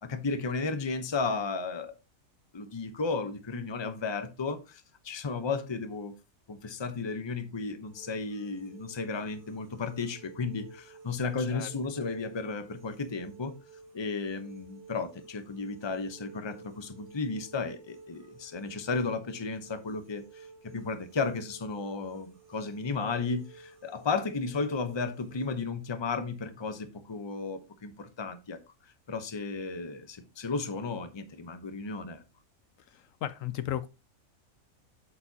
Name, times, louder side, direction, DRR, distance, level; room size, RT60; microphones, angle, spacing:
voice 1, 0.0-1.9 2.5-6.1 6.5-13.6 13.9-28.6 29.1-32.2, left 4 dB, 25° left, 0.7 m, -34 dB
sound 1, 7.8-25.5, right 4 dB, 85° right, 3.1 m, -53 dB
voice 2, 33.2-33.9, left 11 dB, 75° left, 1.0 m, -33 dB
8.5 x 7.0 x 2.8 m
omnidirectional pair, 1.5 m